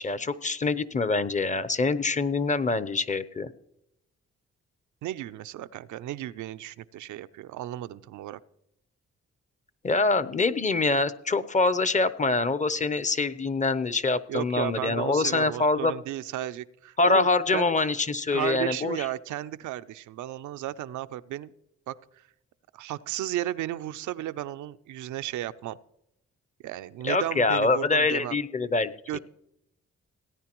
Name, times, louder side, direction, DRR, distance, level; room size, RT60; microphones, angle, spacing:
voice 1, 0.0-3.5 9.8-15.9 17.0-19.0 27.0-29.2, left 3 dB, 25° left, 15 dB, 0.6 m, -25 dB
voice 2, 5.0-8.4 14.3-17.7 18.3-21.5 21.9-22.0 22.7-25.8 26.6-28.4 29.1-29.2, right 13 dB, 85° right, 13 dB, 0.5 m, -34 dB
17.5 x 9.4 x 3.0 m, 0.81 s
cardioid pair, 60°, 29 cm